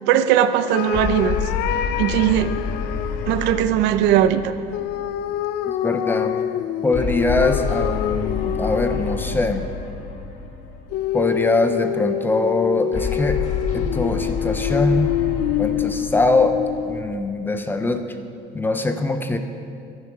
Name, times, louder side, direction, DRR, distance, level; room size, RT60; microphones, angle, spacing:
voice 1, 0.0-1.4 2.0-2.6 3.3-4.5, right 11 dB, 65° right, 11 dB, 0.7 m, -19 dB
sound 1, 0.7-3.7 4.7-9.5 10.9-17.0, left 11 dB, 55° left, 0.5 m, -26 dB
sound 2, 0.9-5.5 6.9-11.3 12.9-17.5, left 5 dB, 40° left, 1.4 m, -29 dB
voice 2, 5.8-6.4 6.8-9.7 11.1-13.4 13.7-15.1 15.6-16.6 16.9-18.0 18.5-19.4, left 2 dB, 10° left, 8 dB, 0.5 m, -22 dB
13.0 x 10.5 x 5.9 m, 2.4 s
cardioid pair, 170°, 19 cm